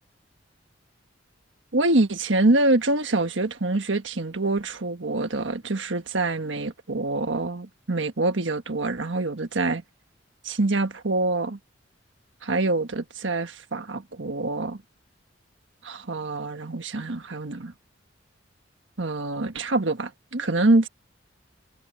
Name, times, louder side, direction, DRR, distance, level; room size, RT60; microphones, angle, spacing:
voice 1, 1.7-9.8 10.4-11.6 12.4-14.8 15.8-17.7 19.0-20.9, right 2 dB, 75° right, 1.5 m, -25 dB
head